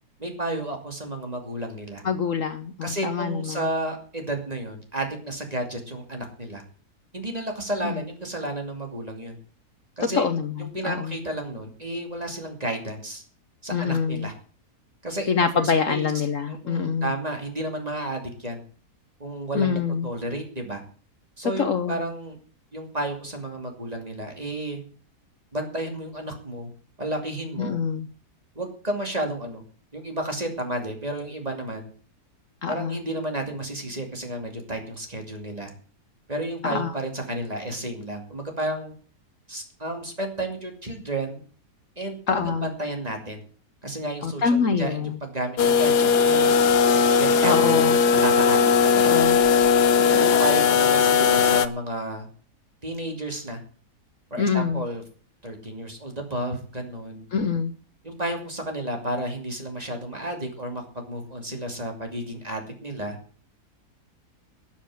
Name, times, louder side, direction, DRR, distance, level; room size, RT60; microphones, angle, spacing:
voice 1, 0.2-2.0 2.8-6.6 7.1-9.4 10.0-10.3 10.6-13.2 13.6-14.3 15.0-16.1 16.5-18.6 19.2-20.8 21.4-22.4 22.7-24.8 25.5-26.7 27.0-27.8 28.5-29.6 29.9-31.9 32.7-35.7 36.3-38.9 39.5-41.4 42.0-43.4 43.8-46.5 47.2-47.8 48.2-49.2 50.0-52.3 52.8-53.6 54.3-55.0 55.4-57.2 58.0-63.2, right 1 dB, 25° right, 3 dB, 2.7 m, -32 dB
voice 2, 2.0-3.6 7.8-8.0 10.0-11.2 13.7-14.3 15.3-17.1 19.5-20.1 21.4-22.0 27.6-28.1 32.6-33.0 36.6-36.9 42.3-42.7 44.2-45.2 47.4-48.0 49.0-49.4 50.1-50.3 54.4-54.8 57.3-57.7, left 6 dB, 55° left, 10 dB, 1.2 m, -25 dB
sound 1, 45.6-51.7, left 6 dB, 80° left, 1.4 m, -18 dB
13.0 x 7.3 x 7.7 m, 0.42 s
omnidirectional pair, 1.7 m